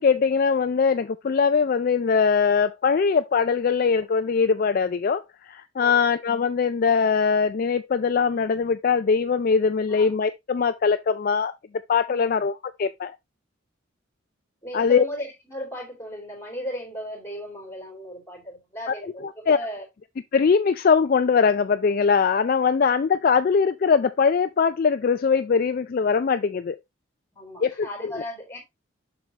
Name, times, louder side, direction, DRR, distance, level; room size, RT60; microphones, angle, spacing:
voice 1, 0.0-11.5 11.9-13.1 14.7-15.0 19.5-19.6 20.3-26.8 27.6-28.2, left 5 dB, 45° left, 0.3 m, -21 dB
voice 2, 14.6-19.9 27.3-28.6, equal, 15° left, 3.0 m, -36 dB
7.4 x 6.0 x 2.8 m
head